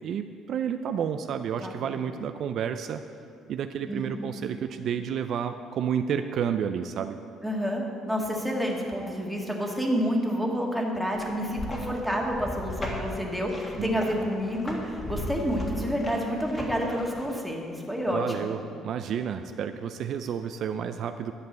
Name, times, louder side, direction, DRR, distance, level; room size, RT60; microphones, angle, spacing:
voice 1, 0.0-3.0 3.5-7.2 13.8-14.3 18.1-21.3, right 8 dB, 60° right, 8 dB, 0.4 m, -30 dB
voice 2, 1.6-2.0 3.9-4.2 7.4-18.5, equal, ahead, -1 dB, 1.6 m, -29 dB
sound 1, 11.1-17.3, left 1 dB, 25° left, 1.8 m, -37 dB
11.0 x 5.3 x 7.5 m, 2.4 s
cardioid pair, 110°, 0 cm